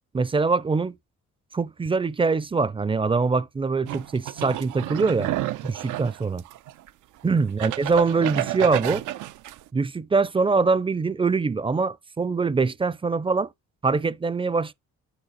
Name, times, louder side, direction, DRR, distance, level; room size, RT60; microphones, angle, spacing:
voice 1, 0.1-0.9 1.5-5.3 5.6-6.4 7.2-9.0 9.7-13.5 13.8-14.7, right 4 dB, 20° right, 0.5 m, -23 dB
sound 1, 3.9-6.9 7.4-9.6, right 15 dB, 80° right, 0.6 m, -30 dB
8.9 x 4.1 x 4.0 m
cardioid pair, 90°, 30 cm